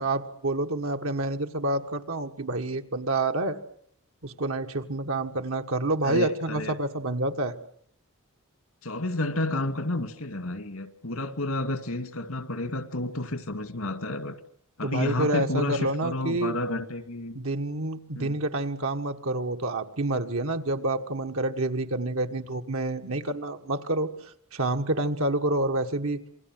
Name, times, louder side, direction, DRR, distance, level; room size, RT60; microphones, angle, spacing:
voice 1, 0.0-3.6 4.2-7.5 14.8-16.6 17.3-26.2, right 2 dB, 80° right, 5 dB, 1.7 m, -28 dB
voice 2, 6.0-6.8 8.8-14.4 14.8-17.4 18.1-18.4, left 2 dB, 90° left, 9 dB, 2.3 m, -30 dB
28.0 x 22.0 x 7.7 m, 0.67 s
head